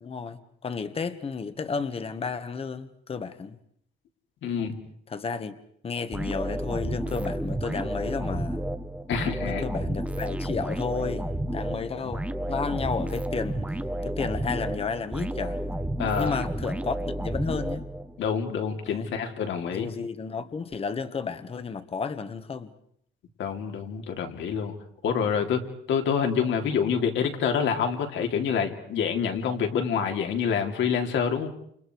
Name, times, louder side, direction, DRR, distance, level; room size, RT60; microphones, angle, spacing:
voice 1, 0.0-3.6 5.1-5.5 5.8-8.6 9.4-13.7 14.0-15.6 16.2-17.8 18.9-19.1 19.7-22.7 25.2-25.4, left 5 dB, 30° left, 1.5 m, -32 dB
voice 2, 4.4-4.8 9.1-9.6 12.0-12.1 16.0-16.4 18.2-19.9 23.4-24.7 25.0-31.5, left 7 dB, 70° left, 3.5 m, -27 dB
sound 1, 6.1-18.3, right 1 dB, 5° right, 1.2 m, -31 dB
29.0 x 29.0 x 4.8 m
cardioid pair, 145°, 20 cm